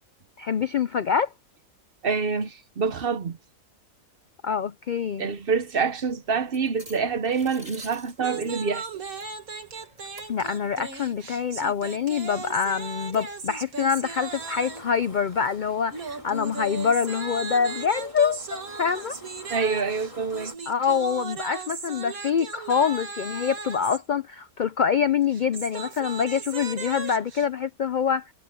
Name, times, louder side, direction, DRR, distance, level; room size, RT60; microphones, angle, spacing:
voice 1, 0.4-1.3 4.4-5.3 10.3-19.2 20.7-28.3, left 7 dB, 85° left, 0.4 m, -25 dB
voice 2, 2.0-3.4 5.2-9.0 19.5-20.5, right 5 dB, 45° right, 0.9 m, -26 dB
sound 1, 5.3-16.8, right 1 dB, 30° right, 6.9 m, -53 dB
sound 2, 8.2-15.0 15.9-24.0 25.2-27.5, right 4 dB, 75° right, 2.4 m, -37 dB
sound 3, 14.1-20.6, left 1 dB, 20° left, 3.0 m, -47 dB
omnidirectional pair, 1.5 m